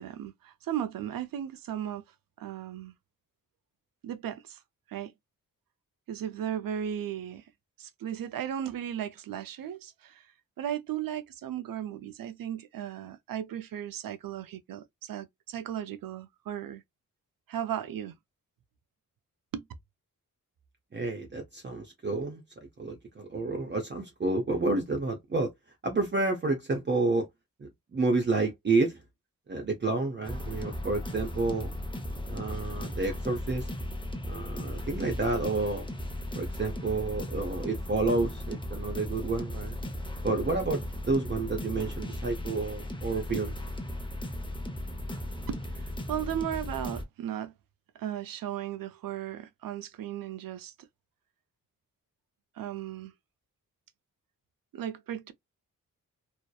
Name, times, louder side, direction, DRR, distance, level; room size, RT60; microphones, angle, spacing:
voice 1, 0.0-2.0 2.4-2.9 4.0-4.6 4.9-5.1 6.1-7.5 7.8-10.3 10.6-16.8 17.5-18.2 19.5-19.6 45.5-47.5 47.9-50.7 52.6-53.1 54.7-55.3, right 10 dB, 75° right, 0.5 m, -36 dB
voice 2, 20.9-22.4 22.8-25.5 25.8-27.3 27.6-29.0 29.5-31.7 32.3-33.7 34.2-35.9 36.3-39.8 40.2-43.5, right 3 dB, 30° right, 0.6 m, -30 dB
sound 1, 30.2-47.0, left 1 dB, 15° left, 0.6 m, -36 dB
2.8 x 2.0 x 2.2 m
cardioid pair, 80°, 34 cm